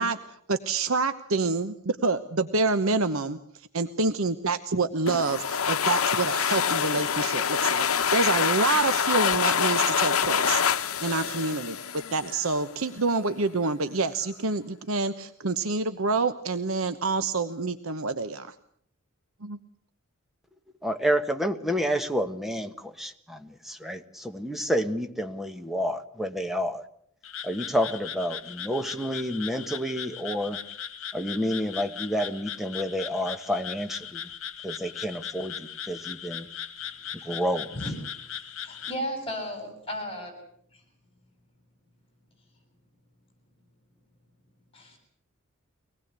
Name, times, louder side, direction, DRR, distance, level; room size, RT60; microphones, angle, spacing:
voice 1, 0.0-18.5 19.4-19.6, right 3 dB, 75° right, 10 dB, 1.0 m, -27 dB
sound 1, 5.1-12.5, left 7 dB, 85° left, 0.9 m, -26 dB
voice 2, 20.8-26.8 27.4-30.6 31.1-34.2 34.6-36.5 37.2-37.7, equal, ahead, 6 dB, 1.4 m, -29 dB
Frog, 27.2-39.0, left 9 dB, 65° left, 1.8 m, -38 dB
voice 3, 38.6-40.3 44.7-45.0, equal, 25° left, 5 dB, 7.5 m, -34 dB
24.5 x 19.0 x 8.3 m, 0.68 s
head